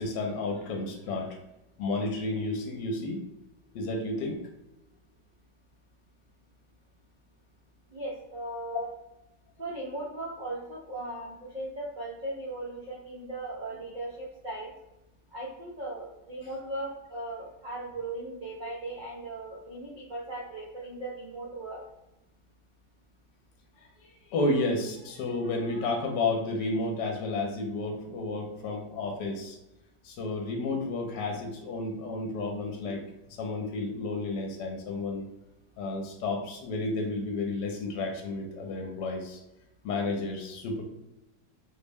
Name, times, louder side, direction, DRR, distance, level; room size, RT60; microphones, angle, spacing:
voice 1, 0.0-1.4 1.8-3.2 3.7-4.4 8.7-8.8 9.8-9.9 23.8-29.6 30.0-35.3 35.8-39.4 39.8-40.8, left 2 dB, 75° left, 2 dB, 1.2 m, -32 dB
voice 2, 7.9-8.9 9.6-14.7 15.3-21.8, right 2 dB, 90° right, -5 dB, 0.4 m, -38 dB
4.0 x 2.1 x 3.4 m, 0.95 s
omnidirectional pair, 1.9 m